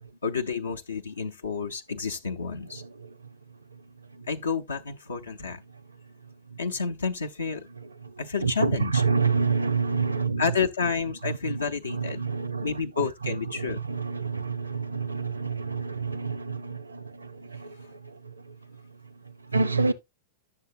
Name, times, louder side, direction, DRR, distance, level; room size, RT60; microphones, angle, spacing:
voice 1, 0.2-2.8 4.3-5.6 6.6-7.7 8.2-9.0 10.4-12.2 12.6-13.8, left 5 dB, 80° left, 0.6 m, -30 dB
voice 2, 2.7-3.2 3.7-3.8 4.1-4.3 6.2-6.6 7.8-10.6 11.2-19.9, right 4 dB, 85° right, 0.6 m, -29 dB
9.6 x 6.8 x 2.7 m
figure-of-eight pair, 95°, 0 cm